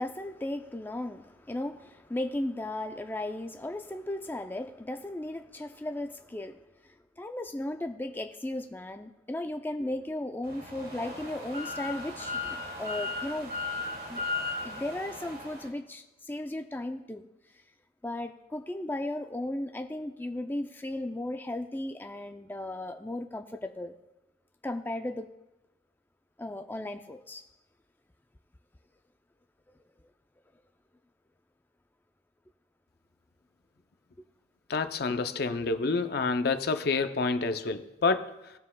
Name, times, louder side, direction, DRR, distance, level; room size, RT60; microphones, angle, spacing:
voice 1, 0.0-6.6 7.2-13.5 14.1-14.2 14.6-17.3 18.0-24.0 24.6-25.3 26.4-27.4 35.1-35.2, left 1 dB, 10° left, 0.4 m, -36 dB
sound 1, 10.4-15.7, left 3 dB, 50° right, 2.4 m, -36 dB
voice 2, 34.7-38.5, left 4 dB, 60° left, 0.5 m, -28 dB
18.5 x 7.3 x 2.2 m
head